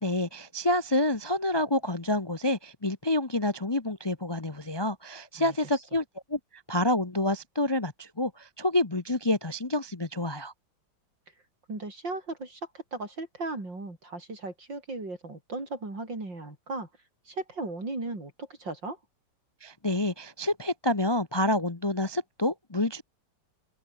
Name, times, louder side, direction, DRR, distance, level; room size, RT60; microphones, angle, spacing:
voice 1, 0.0-6.0 6.3-6.4 6.7-10.5 19.6-23.0, left 1 dB, 20° left, 0.8 m, -28 dB
voice 2, 11.7-16.9 17.3-19.0, right 2 dB, 75° right, 7.2 m, -36 dB
open air
omnidirectional pair, 2.0 m